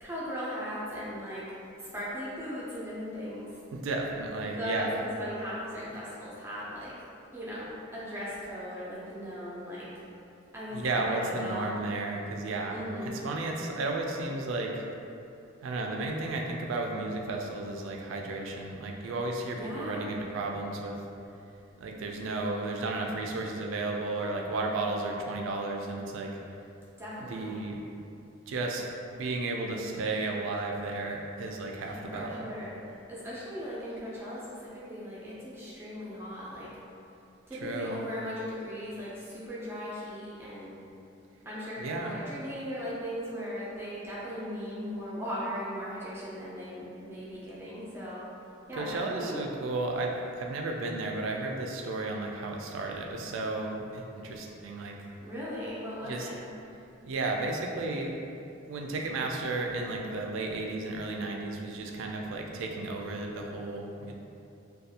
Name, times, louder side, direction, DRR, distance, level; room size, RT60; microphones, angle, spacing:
voice 1, 0.0-1.5 1.8-3.6 4.6-6.9 7.3-10.0 10.5-11.7 12.7-13.2 19.5-20.0 27.0-27.7 31.8-32.8 33.1-36.7 37.5-40.8 41.4-48.2 48.7-49.4 55.2-56.4, equal, 10° right, -8 dB, 0.5 m, -38 dB
voice 2, 3.7-5.0 10.7-12.8 13.2-14.8 15.6-21.0 21.8-26.3 27.2-27.8 28.5-28.8 29.1-32.4 37.6-38.0 41.8-42.1 48.8-55.0 56.1-56.3 57.0-58.1 58.7-64.1, right 2 dB, 65° right, 1 dB, 0.3 m, -33 dB
2.4 x 2.2 x 2.7 m, 2.7 s
head